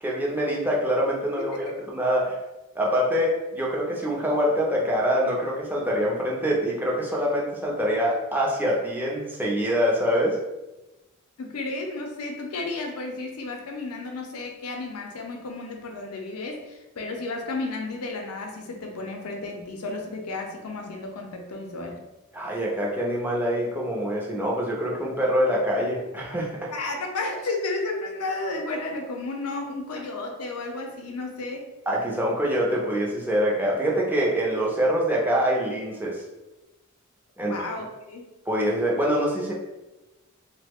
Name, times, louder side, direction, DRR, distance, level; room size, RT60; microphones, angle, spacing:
voice 1, 0.0-2.4 2.8-10.4 22.3-26.7 31.9-36.2 37.4-37.6 38.5-39.5, equal, 10° right, -3 dB, 0.4 m, -25 dB
voice 2, 1.4-1.7 11.4-22.0 26.7-31.7 37.4-38.3, left 2 dB, 85° left, 2 dB, 0.5 m, -33 dB
3.1 x 2.1 x 3.4 m, 1.0 s
head